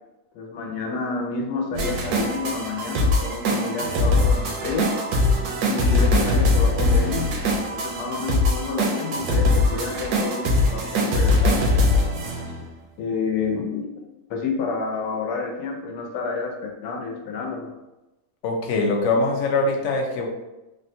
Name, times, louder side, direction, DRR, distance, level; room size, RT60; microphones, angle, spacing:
voice 1, 0.3-5.0 5.7-7.3 7.7-12.0 13.0-17.7, left 4 dB, 80° left, 1 dB, 1.2 m, -29 dB
sound 1, 1.7-12.7, left 2 dB, 80° right, 1.1 m, -22 dB
voice 2, 18.4-20.3, left 3 dB, 65° left, 1 dB, 0.8 m, -22 dB
3.5 x 2.2 x 2.6 m, 1.0 s
omnidirectional pair, 1.7 m